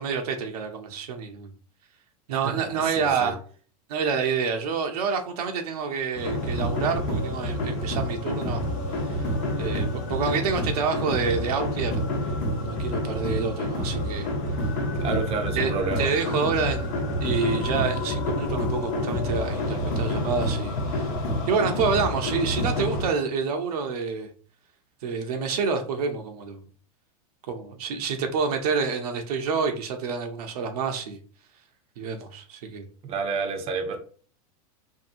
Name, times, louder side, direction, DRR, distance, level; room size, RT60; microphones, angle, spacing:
voice 1, 0.0-1.5 2.3-3.4 3.9-8.6 8.9-9.3 9.6-12.0 12.6-14.3 15.1-15.3 15.6-15.7 16.0-21.1 21.5-24.3 25.0-26.6 27.5-31.2 32.0-32.9, right 5 dB, 80° right, 0.6 m, -28 dB
voice 2, 2.3-3.3 15.0-16.1 33.0-34.0, right 4 dB, 30° right, 0.6 m, -29 dB
sound 1, 6.2-23.1, left 1 dB, 65° left, 0.8 m, -28 dB
2.7 x 2.6 x 2.5 m
supercardioid pair, 120°, 19 cm